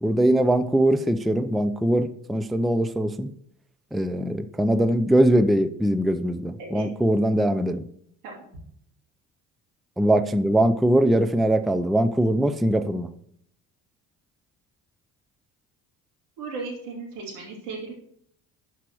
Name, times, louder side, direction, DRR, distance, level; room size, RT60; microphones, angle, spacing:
voice 1, 0.0-3.3 3.9-7.8 10.0-13.1, right 1 dB, ahead, 11 dB, 0.5 m, -21 dB
voice 2, 16.4-17.9, right 4 dB, 85° right, -3 dB, 2.8 m, -36 dB
11.5 x 4.8 x 2.9 m, 0.67 s
hypercardioid pair, 55°, 44 cm